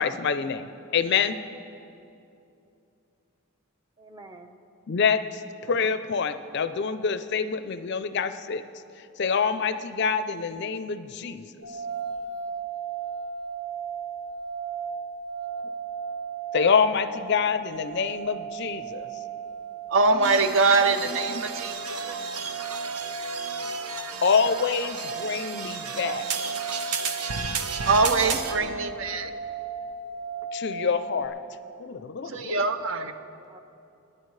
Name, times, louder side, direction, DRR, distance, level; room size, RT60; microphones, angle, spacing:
voice 1, 0.0-1.4 4.9-8.6 9.0-11.5 11.7-11.8 16.5-19.1 24.2-26.3 30.5-31.4 31.8-32.6, left 6 dB, 50° left, 11 dB, 0.4 m, -26 dB
voice 2, 4.0-4.6 28.1-29.6 33.2-33.6, right 1 dB, 20° right, 6 dB, 0.7 m, -46 dB
sound 1, 11.6-31.3, right 5 dB, 35° right, 1.3 m, -36 dB
voice 3, 19.9-21.8 27.8-29.3 32.2-33.1, right 3 dB, 55° right, 9 dB, 0.6 m, -23 dB
sound 2, 20.2-28.6, right 5 dB, 90° right, 0.9 m, -33 dB
25.0 x 10.5 x 3.2 m, 2.7 s
head